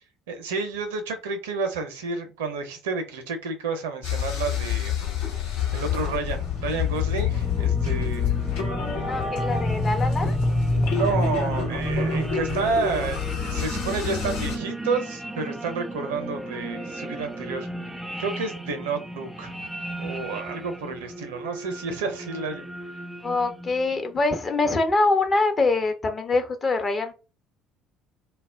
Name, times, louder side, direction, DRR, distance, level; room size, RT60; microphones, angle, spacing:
voice 1, 0.3-5.0 5.4-5.5 5.7-8.4 9.0-9.1 10.9-17.7 18.2-19.7 20.0-22.7, right 4 dB, 75° right, 0.6 m, -30 dB
sound 1, 4.0-14.6, left 9 dB, 70° left, 0.9 m, -28 dB
sound 2, 5.5-23.9, equal, 5° right, 0.4 m, -31 dB
voice 2, 9.0-10.4 10.8-11.0 23.2-27.1, left 3 dB, 30° left, 0.7 m, -24 dB
2.2 x 2.1 x 3.5 m
figure-of-eight pair, 55°, 0 cm